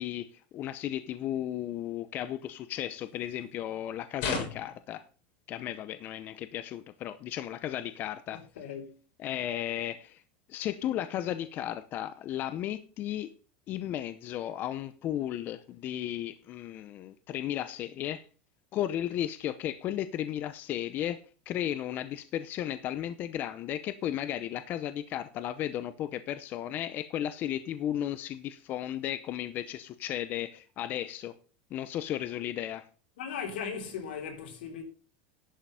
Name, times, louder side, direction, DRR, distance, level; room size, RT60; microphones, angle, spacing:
voice 1, 0.0-5.1 5.5-8.4 9.2-10.2 10.5-13.3 13.7-18.3 18.7-21.2 21.5-31.3 31.7-32.9, left 11 dB, 35° left, 0.7 m, -34 dB
sound 1, 4.2-4.8 8.0-8.1, left 4 dB, 55° left, 6.7 m, -33 dB
voice 2, 8.3-9.0 33.2-34.8, left 7 dB, 90° left, 3.4 m, -38 dB
11.0 x 5.8 x 6.3 m
supercardioid pair, 150°, 5 cm